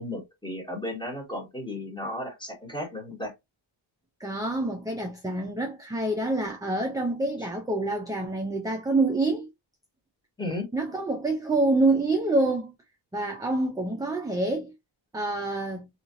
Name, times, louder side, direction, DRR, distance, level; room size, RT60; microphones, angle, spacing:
voice 1, 0.0-3.3 10.4-10.6, left 1 dB, 10° left, 1.3 m, -34 dB
voice 2, 4.2-9.5 10.7-12.7 13.1-14.7 15.1-15.9, right 2 dB, 10° right, 0.4 m, -26 dB
3.0 x 2.8 x 2.5 m
wide cardioid pair, 155°, 48 cm